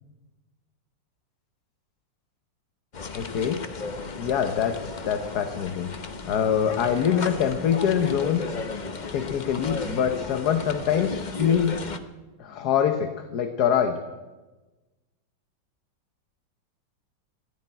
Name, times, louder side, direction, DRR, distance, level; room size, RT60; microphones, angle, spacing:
sound 1, 2.9-12.0, left 4 dB, 40° left, 0.6 m, -35 dB
voice 1, 3.1-3.7 4.2-6.0 6.3-8.5 9.1-11.8 12.4-14.0, left 8 dB, 65° left, 7 dB, 1.4 m, -24 dB
15.0 x 10.5 x 8.8 m, 1.2 s
omnidirectional pair, 2.0 m